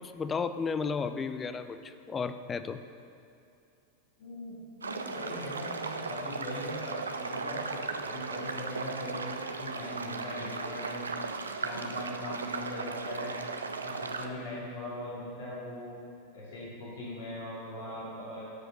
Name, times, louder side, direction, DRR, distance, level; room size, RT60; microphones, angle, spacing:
voice 1, 0.0-2.8, left 5 dB, 20° left, 11 dB, 0.5 m, -33 dB
voice 2, 4.2-4.6 4.8-11.1 11.5-13.4 13.8-16.0 16.3-18.4, left 1 dB, 70° left, -7 dB, 2.8 m, -40 dB
sound 1, 4.8-14.3, right 4 dB, 85° right, 0.5 m, -37 dB
13.0 x 5.1 x 6.6 m, 2.6 s
hypercardioid pair, 90°, 0 cm